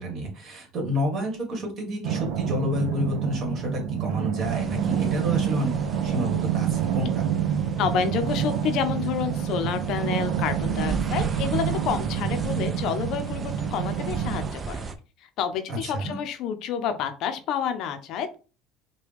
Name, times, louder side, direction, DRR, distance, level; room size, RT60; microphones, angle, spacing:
voice 1, 0.0-5.7 6.0-7.1 15.7-16.1, left 1 dB, 45° right, 1 dB, 1.8 m, -30 dB
sound 1, 2.0-14.5, right 9 dB, 75° right, 0.5 m, -27 dB
sound 2, 4.4-14.9, right 4 dB, 25° right, 0.5 m, -37 dB
voice 2, 7.8-14.8 15.2-18.4, left 7 dB, 60° left, 8 dB, 0.6 m, -29 dB
4.7 x 2.2 x 3.4 m, 0.35 s
cardioid pair, 120°, 0 cm